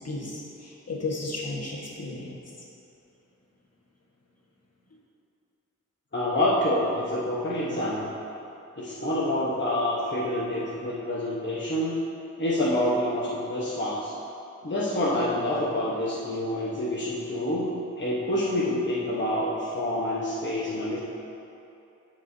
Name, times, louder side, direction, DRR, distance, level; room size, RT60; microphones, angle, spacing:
voice 1, 0.0-2.4, left 2 dB, 50° left, -4 dB, 1.5 m, -34 dB
voice 2, 6.1-8.1 8.8-12.0 12.4-14.1 14.6-21.0, left 1 dB, 35° left, -7 dB, 1.1 m, -27 dB
12.0 x 4.9 x 2.7 m, 2.8 s
wide cardioid pair, 65°, 31 cm